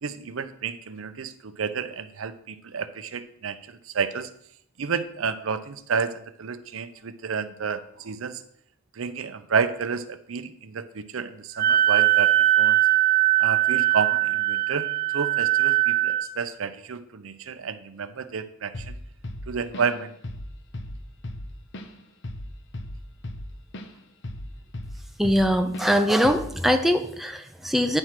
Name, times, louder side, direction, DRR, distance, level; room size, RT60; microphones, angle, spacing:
voice 1, 0.0-4.3 4.8-8.4 9.0-12.8 13.4-14.9 15.1-19.0 19.5-20.1, right 5 dB, 70° right, 11 dB, 0.6 m, -30 dB
Wind instrument woodwind instrument, 11.6-16.3, right 15 dB, 45° right, 0.9 m, -21 dB
Drum kit / Drum, 18.7-19.0 19.2-20.0 20.2-20.5 20.7-23.9 24.2-25.5 25.7-25.9 26.2-26.6, left 1 dB, 60° left, 0.9 m, -36 dB
voice 2, 25.2-28.0, equal, ahead, 5 dB, 0.5 m, -22 dB
9.8 x 4.6 x 5.8 m, 0.69 s
head